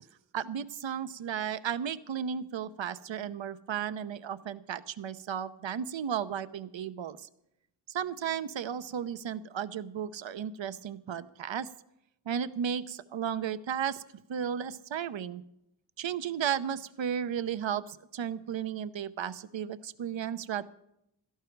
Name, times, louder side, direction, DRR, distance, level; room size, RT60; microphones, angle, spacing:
voice 1, 0.3-7.3 7.9-11.7 12.3-14.0 14.3-15.4 16.0-20.6, right 8 dB, 75° right, 13 dB, 0.8 m, -34 dB
17.0 x 13.5 x 4.6 m, 0.79 s
wide cardioid pair, 70°, 46 cm